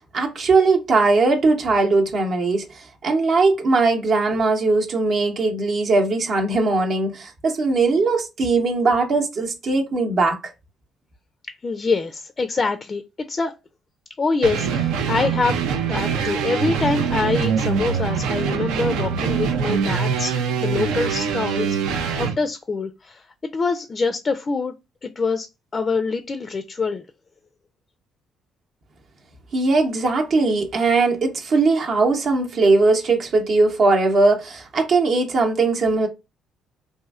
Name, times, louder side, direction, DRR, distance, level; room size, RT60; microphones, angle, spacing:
voice 1, 0.1-10.5 29.5-36.1, right 3 dB, 55° right, 0.7 m, -19 dB
voice 2, 11.6-13.5 14.2-20.4 20.6-23.3 23.5-24.7 25.0-25.5 25.7-27.1, left 4 dB, 40° left, 0.4 m, -25 dB
sound 1, 14.4-22.4, right 6 dB, 75° right, 0.4 m, -23 dB
2.9 x 2.6 x 2.3 m
hypercardioid pair, 50°, 0 cm